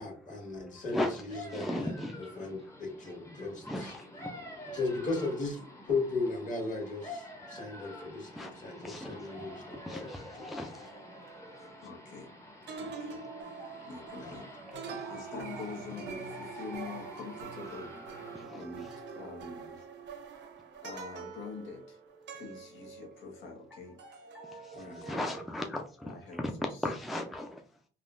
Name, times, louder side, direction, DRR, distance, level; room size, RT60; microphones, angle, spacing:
voice 1, 0.0-1.9 2.4-3.7 4.7-5.6 5.9-10.1 10.4-10.5 14.2-14.4 24.7-25.0, left 3 dB, 40° left, 1.6 m, -36 dB
sound 1, 0.8-18.4, left 1 dB, 15° left, 0.8 m, -48 dB
voice 2, 0.9-1.2 1.5-2.1 3.7-3.9 7.5-7.7 8.4-8.5 8.8-9.1 9.9-10.7 13.6-13.7 15.0-15.1 18.5-18.6 24.0-24.1 25.1-25.8 26.8-27.5, left 1 dB, ahead, 0.4 m, -36 dB
sound 2, 8.8-12.3 12.7-23.7 24.0-25.5, right 5 dB, 65° right, 0.6 m, -46 dB
voice 3, 11.8-12.3 12.8-13.2 13.9-14.5 15.1-18.0 18.5-18.9 19.1-19.8 20.8-22.0 22.3-24.0 24.9-25.2 26.0-26.4, left 4 dB, 75° left, 0.9 m, -45 dB
3.5 x 2.3 x 2.5 m
cardioid pair, 90°, 20 cm